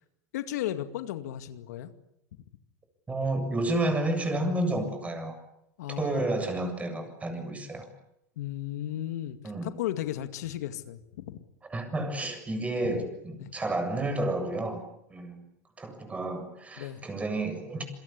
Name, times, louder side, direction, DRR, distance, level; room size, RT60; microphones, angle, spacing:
voice 1, 0.3-1.9 5.8-6.3 8.4-9.4 9.6-11.4 12.8-13.0 13.4-13.5 16.8-17.0, left 12 dB, 85° left, 10 dB, 2.2 m, -35 dB
voice 2, 3.1-5.4 6.0-7.9 9.4-9.7 11.7-14.8 15.1-15.4 15.8-17.8, right 2 dB, 15° right, 7 dB, 7.5 m, -30 dB
27.5 x 23.0 x 8.7 m, 0.80 s
supercardioid pair, 120°, 9 cm